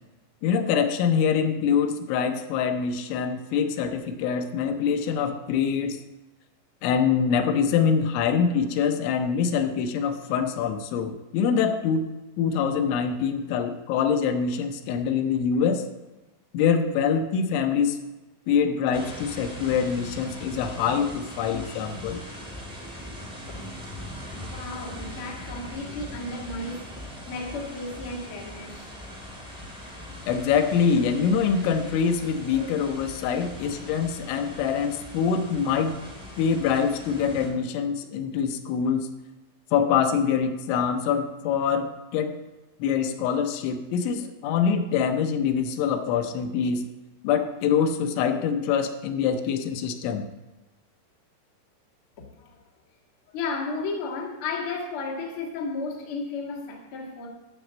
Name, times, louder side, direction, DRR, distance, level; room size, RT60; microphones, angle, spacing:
voice 1, 0.4-6.0 6.8-12.1 12.4-15.9 16.5-18.0 18.5-22.2 30.3-36.0 36.4-39.1 39.7-42.4 42.8-46.9 47.2-50.3, left 7 dB, 85° left, 7 dB, 3.1 m, -24 dB
sound 1, 18.9-37.5, equal, ahead, 1.1 m, -41 dB
voice 2, 24.3-28.9 52.2-52.6 53.3-57.3, left 3 dB, 65° left, -2 dB, 1.3 m, -34 dB
12.5 x 4.2 x 7.3 m, 1.1 s
omnidirectional pair, 5.4 m